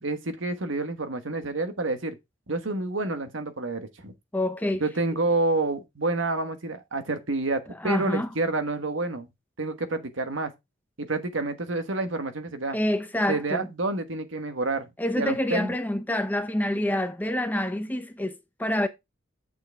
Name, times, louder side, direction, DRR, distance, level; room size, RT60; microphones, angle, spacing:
voice 1, 0.0-2.2 2.5-4.1 4.8-9.3 9.6-10.5 11.0-12.8 13.3-14.9 15.1-15.7, right 2 dB, 90° right, 1.3 m, -28 dB
voice 2, 4.3-4.8 7.8-8.3 12.7-13.7 15.0-18.9, left 1 dB, 10° left, 0.6 m, -27 dB
7.8 x 6.6 x 3.5 m
head